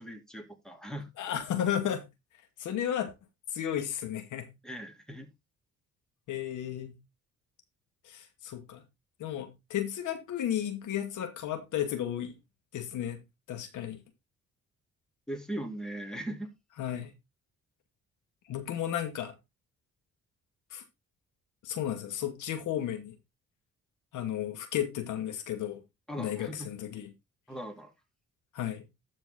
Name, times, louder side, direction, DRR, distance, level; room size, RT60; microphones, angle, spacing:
voice 1, 0.0-1.1 4.6-5.3 15.3-16.5 26.1-26.7 27.5-27.9, right 1 dB, ahead, 2.9 m, -39 dB
voice 2, 1.2-2.0 2.6-3.1 3.5-4.5 6.3-7.0 8.0-8.8 9.2-12.3 12.7-13.2 13.5-14.0 16.8-17.1 18.5-19.3 20.7-20.8 21.6-23.1 24.1-25.8 26.2-27.1 28.5-28.9, left 10 dB, 80° left, 2.1 m, -33 dB
12.5 x 4.6 x 4.1 m
cardioid pair, 90°, 30 cm